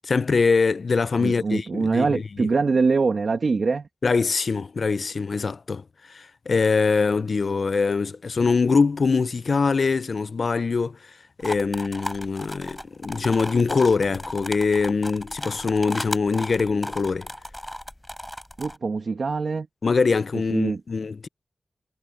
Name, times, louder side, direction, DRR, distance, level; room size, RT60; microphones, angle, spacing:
voice 1, 0.0-2.5 4.0-11.1 11.4-17.3 19.8-21.3, left 4 dB, 70° left, 0.5 m, -23 dB
voice 2, 1.2-3.9 18.6-19.7 20.5-20.8, right 4 dB, 75° right, 1.9 m, -23 dB
sound 1, 11.4-18.8, equal, 5° left, 4.4 m, -35 dB
wide cardioid pair, 95°, 0 cm